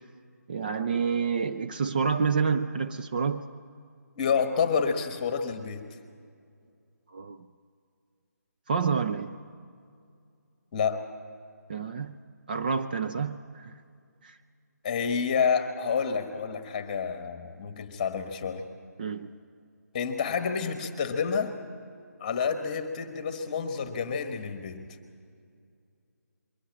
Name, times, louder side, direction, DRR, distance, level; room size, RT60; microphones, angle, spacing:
voice 1, 0.5-3.4 7.1-7.5 8.7-9.3 11.7-12.2 12.5-13.7 14.2-14.4 19.0-19.3, right 5 dB, 30° right, 0.5 m, -28 dB
voice 2, 4.2-5.9 10.7-11.0 14.8-18.7 19.9-21.5 22.2-24.9, left 6 dB, 25° left, 1.3 m, -29 dB
22.5 x 16.5 x 8.8 m
figure-of-eight pair, 155°, 10 cm